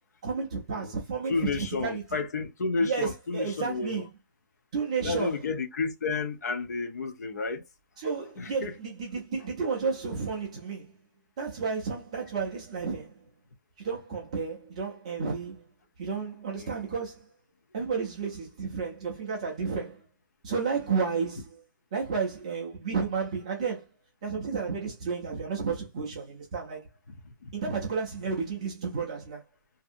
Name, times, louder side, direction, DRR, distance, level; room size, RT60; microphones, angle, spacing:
voice 1, 0.2-2.0 2.8-3.1 3.3-4.1 4.7-5.3 8.0-10.9 11.4-13.2 13.8-15.7 16.0-17.2 17.7-20.0 20.4-21.4 21.9-23.9 24.2-26.9 27.5-29.4, right 5 dB, 15° right, 0.4 m, -32 dB
voice 2, 1.3-4.0 5.0-7.6 8.4-8.7 9.4-9.5 16.6-16.8 20.8-21.1 27.4-27.5, left 4 dB, 50° left, 0.6 m, -31 dB
2.7 x 2.6 x 2.4 m
hypercardioid pair, 175°, 11 cm